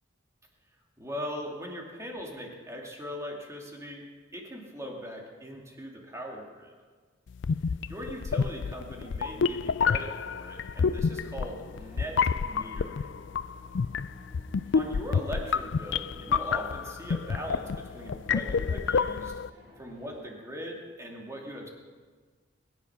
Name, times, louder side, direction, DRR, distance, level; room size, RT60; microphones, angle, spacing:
voice 1, 1.0-4.0 4.3-6.7 7.9-13.1 14.7-19.3 19.8-21.7, equal, 15° right, -1 dB, 2.5 m, -40 dB
sound 1, 7.4-19.5, left 5 dB, 70° left, 0.4 m, -29 dB
sound 2, 11.4-20.2, left 1 dB, 65° right, 4.9 m, -55 dB
21.5 x 10.5 x 5.8 m, 1.5 s
head